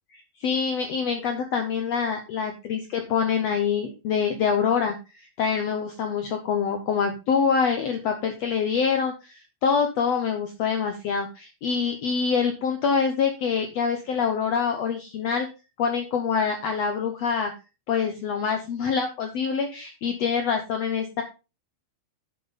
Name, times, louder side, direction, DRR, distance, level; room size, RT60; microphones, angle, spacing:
voice 1, 0.1-15.5 15.8-17.5 17.9-21.2, left 6 dB, 70° left, 5 dB, 1.5 m, -25 dB
9.1 x 7.4 x 4.2 m, 0.30 s
omnidirectional pair, 4.2 m